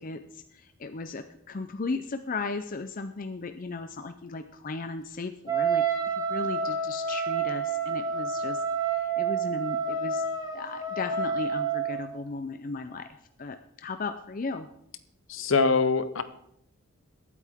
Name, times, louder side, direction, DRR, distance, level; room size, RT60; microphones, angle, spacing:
voice 1, 0.0-10.2 10.5-13.1 13.4-14.7, left 3 dB, 40° left, 8 dB, 0.5 m, -36 dB
Wind instrument woodwind instrument, 5.5-12.1, right 5 dB, 20° right, 1.6 m, -29 dB
voice 2, 15.3-16.2, left 4 dB, 65° left, 12 dB, 0.9 m, -23 dB
21.5 x 8.4 x 3.6 m, 0.73 s
head